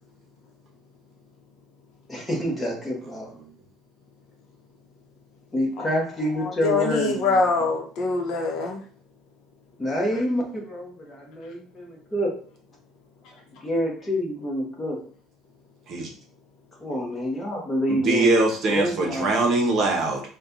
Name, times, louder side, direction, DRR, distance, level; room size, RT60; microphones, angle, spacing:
voice 1, 2.1-3.3 5.5-7.4 9.8-12.3 13.6-15.0 16.8-18.4 18.7-19.5, equal, 15° left, -1 dB, 1.0 m, -27 dB
voice 2, 6.4-8.8, left 3 dB, 55° left, 1 dB, 0.8 m, -24 dB
voice 3, 18.0-20.2, right 2 dB, 40° right, 1 dB, 0.9 m, -22 dB
4.1 x 2.3 x 3.9 m, 0.44 s
cardioid pair, 170°, 0 cm